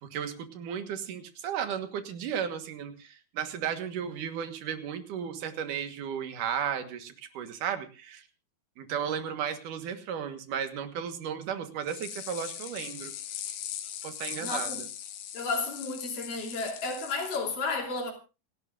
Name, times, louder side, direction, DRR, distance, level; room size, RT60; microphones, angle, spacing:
voice 1, 0.0-8.2 8.8-13.1 14.0-14.7, right 8 dB, 65° right, 2.8 m, -34 dB
sound 1, 11.9-17.4, left 10 dB, 80° left, 3.2 m, -39 dB
voice 2, 14.4-14.8 15.3-18.1, left 3 dB, 65° left, 4.5 m, -32 dB
28.0 x 12.0 x 2.6 m
omnidirectional pair, 4.3 m